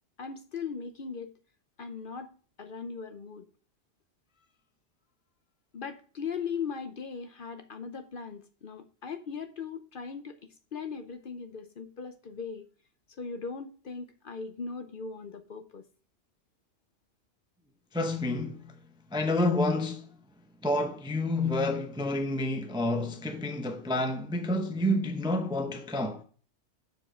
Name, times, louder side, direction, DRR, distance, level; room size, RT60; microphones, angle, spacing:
voice 1, 0.2-1.3 1.8-3.4 5.7-10.4 10.7-12.7 13.2-15.8, left 5 dB, 50° left, 0.8 m, -39 dB
voice 2, 17.9-18.7 19.1-20.1 20.6-26.2, left 1 dB, 5° right, 0.4 m, -29 dB
7.1 x 4.7 x 4.3 m
omnidirectional pair, 1.3 m